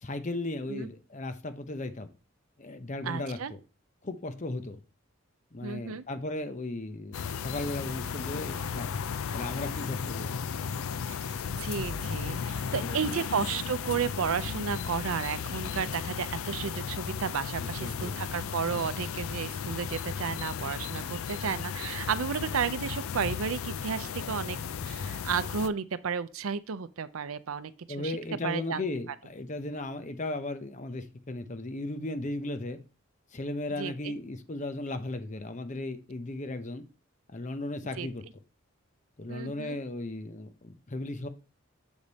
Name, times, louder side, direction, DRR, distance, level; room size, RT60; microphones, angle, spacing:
voice 1, 0.0-2.1 2.6-3.6 4.0-4.8 5.5-9.0 9.3-10.5 12.4-13.2 17.6-18.1 18.7-18.8 27.9-32.8 33.3-36.8 37.3-38.2 39.2-41.3, left 2 dB, 35° left, 0.7 m, -36 dB
voice 2, 3.0-3.5 5.6-6.0 11.1-24.6 24.8-27.7 28.0-28.2 28.4-28.8 33.8-34.1 38.0-38.1 39.3-39.8, right 6 dB, 85° right, 0.5 m, -33 dB
sound 1, 7.1-25.7, left 6 dB, 90° left, 0.4 m, -35 dB
7.2 x 5.0 x 4.1 m
head